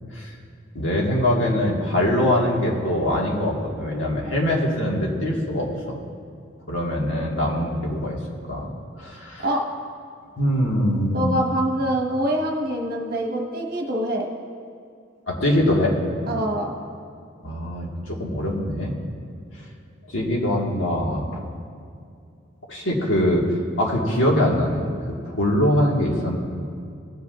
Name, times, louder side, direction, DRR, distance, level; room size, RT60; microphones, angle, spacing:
voice 1, 0.7-6.0 6.7-8.2 8.5-8.7 9.0-9.5 10.4-11.4 15.3-15.9 17.4-19.0 20.1-21.4 22.7-23.4 23.8-24.9 25.2-26.4, left 1 dB, 75° left, -2 dB, 1.8 m, -23 dB
voice 2, 11.1-14.2 16.3-16.7, right 1 dB, 50° right, 0 dB, 1.3 m, -24 dB
17.0 x 7.8 x 2.5 m, 2.4 s
head